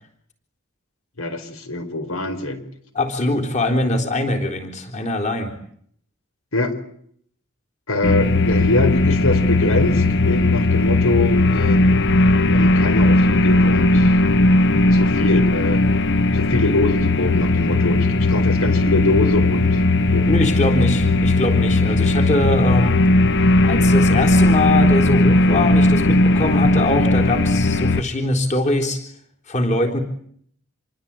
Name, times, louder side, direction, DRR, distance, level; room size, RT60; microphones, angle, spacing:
voice 1, 1.2-2.6 6.5-6.7 7.9-11.8 12.5-14.2 14.9-15.8 16.3-19.8 20.1-20.3, left 2 dB, 75° left, 10 dB, 4.5 m, -23 dB
voice 2, 2.9-5.6 20.3-23.0 23.6-29.0 29.5-30.0, left 1 dB, 35° left, 4 dB, 4.0 m, -22 dB
sound 1, 8.0-28.0, left 2 dB, 55° left, 1.1 m, -17 dB
27.5 x 23.5 x 9.0 m, 0.65 s
head